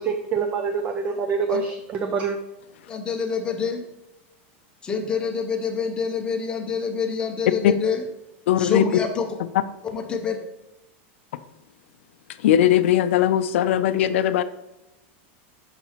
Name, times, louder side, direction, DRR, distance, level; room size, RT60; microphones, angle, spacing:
voice 1, 0.0-2.4, right 5 dB, 20° right, 6 dB, 0.3 m, -26 dB
voice 2, 2.9-3.8 4.8-8.1 8.6-9.3 9.9-10.4, left 6 dB, 15° left, 3 dB, 0.6 m, -26 dB
voice 3, 8.5-8.8 12.4-14.4, left 11 dB, 70° left, 13 dB, 0.4 m, -19 dB
5.7 x 3.0 x 5.6 m, 0.95 s
supercardioid pair, 170°, 7 cm